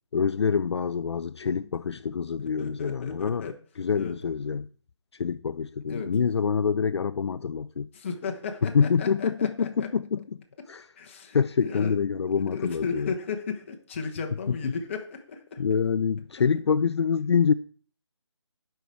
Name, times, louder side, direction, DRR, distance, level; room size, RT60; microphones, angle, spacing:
voice 1, 0.1-4.7 5.1-7.9 8.6-10.4 10.7-10.9 11.3-13.1 14.5-14.7 15.6-17.5, left 6 dB, 65° left, 0.4 m, -26 dB
voice 2, 2.4-3.5 3.9-4.1 5.9-6.1 7.9-9.9 11.0-12.0 12.5-15.6, left 5 dB, 25° left, 1.1 m, -35 dB
12.5 x 5.8 x 4.6 m
figure-of-eight pair, 165°, 15 cm